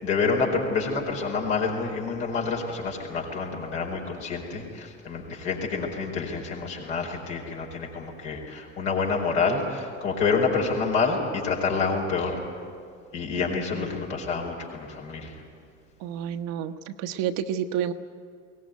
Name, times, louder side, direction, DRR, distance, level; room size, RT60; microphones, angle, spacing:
voice 1, 0.0-12.4 13.1-15.4, left 4 dB, 70° left, -1 dB, 4.6 m, -28 dB
voice 2, 16.0-17.9, right 9 dB, 55° right, 8 dB, 1.2 m, -30 dB
22.0 x 18.5 x 9.5 m, 2.2 s
figure-of-eight pair, 60°, 38 cm